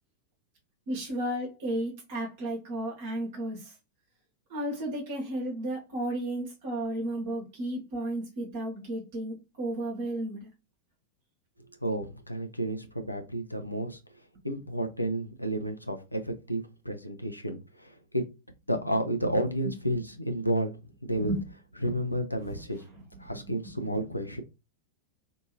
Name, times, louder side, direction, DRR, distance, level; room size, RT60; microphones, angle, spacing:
voice 1, 0.9-3.7 4.5-10.5 21.2-21.4, right 1 dB, 50° right, 1.0 m, -33 dB
voice 2, 11.8-14.0 14.4-18.2 18.7-20.7 21.0-21.4 21.8-22.8 23.2-24.4, right 1 dB, 85° left, 0.5 m, -31 dB
2.7 x 2.6 x 2.7 m
figure-of-eight pair, 90°, 0 cm